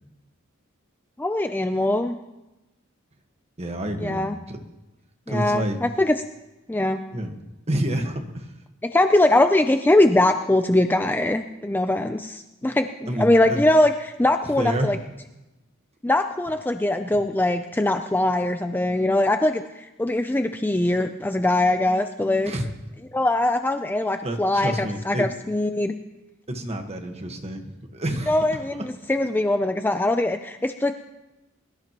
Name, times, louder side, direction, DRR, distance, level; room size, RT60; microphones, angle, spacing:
voice 1, 1.2-2.1 4.0-4.4 5.3-6.1 6.7-7.0 8.9-15.0 16.0-22.5 23.1-26.0 28.3-30.9, left 1 dB, 10° left, 7 dB, 0.4 m, -22 dB
voice 2, 3.6-4.6 5.3-5.8 7.1-7.4 7.7-8.5 12.6-12.7 13.1-13.6 14.6-14.9 17.0-17.1 22.4-22.7 24.2-25.3 26.5-28.7, right 1 dB, 30° right, 4 dB, 1.4 m, -29 dB
22.0 x 13.5 x 3.0 m, 1.0 s
head